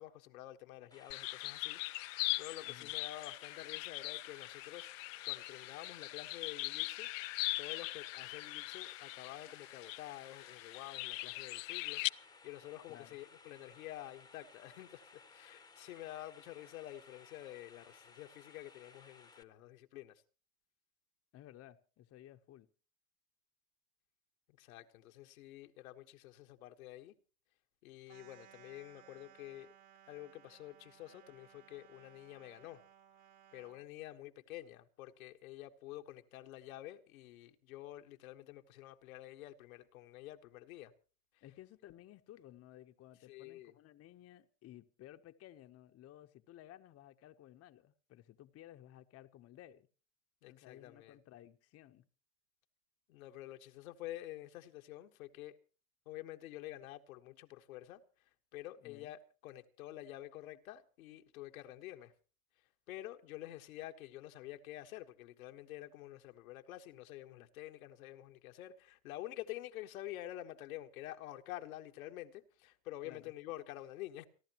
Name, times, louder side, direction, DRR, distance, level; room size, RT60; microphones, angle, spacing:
voice 1, 0.0-4.9 5.2-7.3 7.6-20.2 24.6-27.2 27.8-29.7 30.1-32.8 33.5-40.9 41.3-41.4 43.3-43.7 50.4-51.2 53.1-55.6 56.0-62.1 62.9-74.3, left 14 dB, 85° left, 1.4 m, -49 dB
sound 1, 0.9-19.4, left 4 dB, 10° left, 1.0 m, -60 dB
sound 2, 1.1-12.1, left 23 dB, 70° left, 0.6 m, -41 dB
voice 2, 21.3-22.7 41.4-49.9 50.5-52.1 58.8-59.1 73.0-73.3, left 13 dB, 35° left, 0.9 m, -56 dB
sound 3, 28.1-33.9, right 10 dB, 50° right, 2.8 m, -61 dB
29.5 x 11.5 x 3.0 m
supercardioid pair, 115°, 41 cm